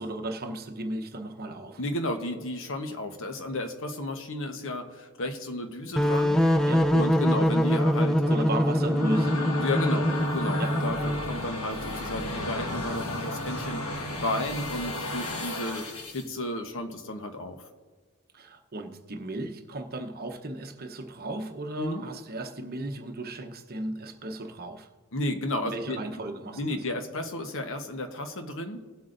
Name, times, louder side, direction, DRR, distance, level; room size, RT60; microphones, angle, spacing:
voice 1, 0.0-1.8 6.7-6.9 8.3-9.5 10.6-10.7 18.3-24.9 25.7-26.8, right 1 dB, 45° right, 5 dB, 0.9 m, -35 dB
voice 2, 1.8-8.4 9.6-10.1 10.3-15.9 16.1-17.6 21.8-22.0 25.1-26.0 26.6-28.9, left 1 dB, 65° left, 6 dB, 1.1 m, -33 dB
sound 1, 6.0-11.5, equal, ahead, 0.5 m, -24 dB
sound 2, 8.6-16.3, left 2 dB, 85° left, 1.5 m, -34 dB
19.5 x 7.8 x 2.6 m, 1.4 s
head